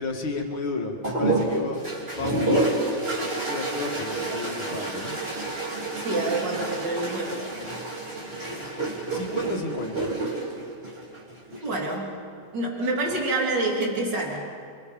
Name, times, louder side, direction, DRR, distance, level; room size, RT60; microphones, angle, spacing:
voice 1, 0.0-2.7 3.2-5.2 9.1-10.1, left 3 dB, 80° left, 1 dB, 3.1 m, -32 dB
sound 1, 1.0-11.7 12.9-13.5, right 2 dB, 30° right, 3.8 m, -29 dB
voice 2, 6.0-7.4 11.6-12.1 12.5-14.5, right 2 dB, 60° right, -1 dB, 4.1 m, -27 dB
28.5 x 24.0 x 5.4 m, 2.3 s
omnidirectional pair, 2.2 m